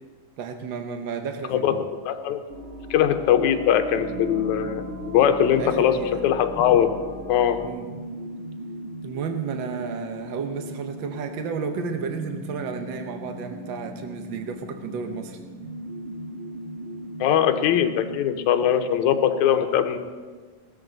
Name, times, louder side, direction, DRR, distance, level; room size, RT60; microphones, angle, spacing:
voice 1, 0.4-1.8 5.6-6.2 7.6-7.9 9.0-15.4, right 5 dB, 75° right, 6 dB, 1.1 m, -32 dB
voice 2, 2.1-2.4 2.9-6.9 7.3-7.6 17.2-20.0, left 9 dB, 80° left, 7 dB, 2.2 m, -21 dB
sound 1, 2.5-7.7, right 2 dB, 45° right, 1.0 m, -37 dB
sound 2, 3.9-19.5, equal, 60° right, 2.9 m, -39 dB
18.5 x 13.5 x 4.0 m, 1.5 s
omnidirectional pair, 3.5 m